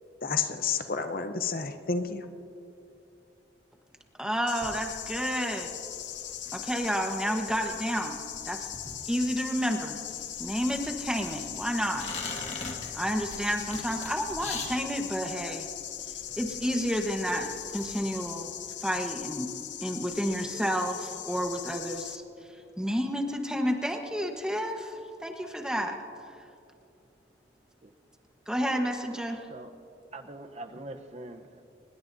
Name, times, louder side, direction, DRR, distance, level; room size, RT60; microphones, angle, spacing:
voice 1, 0.2-2.2, left 5 dB, 55° left, 7 dB, 0.8 m, -30 dB
voice 2, 4.2-5.7 6.5-8.2 8.4-8.7 9.1-10.0 10.4-12.1 12.4-15.7 16.4-18.5 18.8-19.5 19.8-22.2 22.8-26.0 28.5-29.5, equal, 5° right, 3 dB, 1.2 m, -30 dB
sound 1, 4.5-22.2, left 11 dB, 85° left, 0.9 m, -39 dB
sound 2, 4.6-18.0, left 3 dB, 40° left, 2.0 m, -44 dB
voice 3, 30.1-31.6, right 2 dB, 40° right, 7 dB, 0.9 m, -43 dB
25.0 x 21.0 x 2.7 m, 2.6 s
head